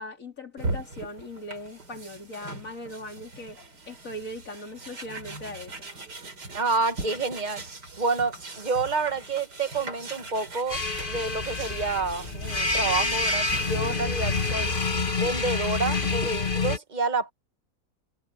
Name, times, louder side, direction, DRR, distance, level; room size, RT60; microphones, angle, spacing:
voice 1, 0.0-3.6 3.9-5.9 13.8-13.9, left 1 dB, 50° left, 3.7 m, -39 dB
sound 1, 0.6-16.5, right 2 dB, 80° right, 4.6 m, -40 dB
voice 2, 6.5-7.6 8.0-10.8 11.1-14.7 15.2-17.3, right 3 dB, 25° right, 1.6 m, -28 dB
sound 2, 10.7-16.8, left 3 dB, 35° left, 1.6 m, -27 dB
omnidirectional pair, 1.8 m